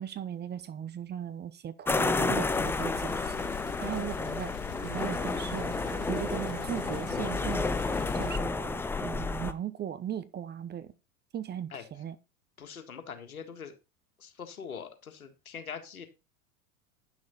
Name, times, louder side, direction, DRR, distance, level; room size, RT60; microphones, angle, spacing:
voice 1, 0.0-3.4 3.8-4.5 4.9-5.7 6.1-7.8 8.1-10.9 11.3-12.2, right 9 dB, 25° right, 0.8 m, -37 dB
sound 1, 1.9-9.5, left 3 dB, 5° left, 0.4 m, -31 dB
sound 2, 2.5-8.4, left 18 dB, 40° left, 0.7 m, -43 dB
Bowed string instrument, 4.7-9.0, right 9 dB, 60° right, 2.1 m, -45 dB
voice 2, 12.6-13.8 14.2-16.1, left 6 dB, 90° left, 1.8 m, -43 dB
9.8 x 6.3 x 4.1 m
hypercardioid pair, 95°, 42 cm